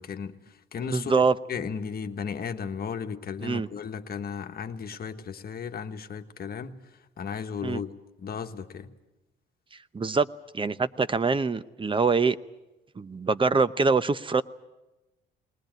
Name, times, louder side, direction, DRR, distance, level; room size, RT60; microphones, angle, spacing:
voice 1, 0.0-1.2 1.5-6.8 7.2-7.9 8.2-8.9, left 6 dB, 50° left, 1.4 m, -35 dB
voice 2, 0.8-1.3 3.4-3.7 7.6-7.8 9.9-10.3 10.5-12.4 13.0-14.4, right 4 dB, 25° right, 0.8 m, -24 dB
20.5 x 19.5 x 9.2 m
cardioid pair, 90°, 20 cm